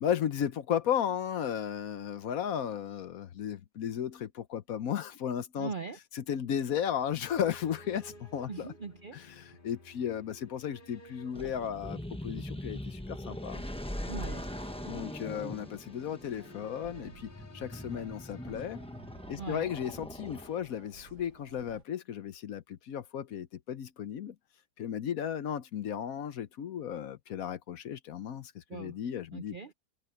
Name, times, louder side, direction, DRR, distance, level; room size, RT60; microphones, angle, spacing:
voice 1, 0.0-5.7 6.1-8.7 9.1-13.6 14.9-18.8 19.3-24.3 24.8-29.6, left 9 dB, 65° left, 1.2 m, -35 dB
voice 2, 5.6-6.0 8.5-9.3 14.1-14.5 19.4-19.8 28.7-29.0 29.3-29.7, right 5 dB, 50° right, 0.6 m, -41 dB
sound 1, 6.8-19.7, left 1 dB, 30° left, 2.5 m, -56 dB
sound 2, 11.3-20.9, left 1 dB, 5° left, 0.9 m, -41 dB
sound 3, 16.2-21.8, right 8 dB, 85° right, 1.6 m, -55 dB
omnidirectional pair, 1.7 m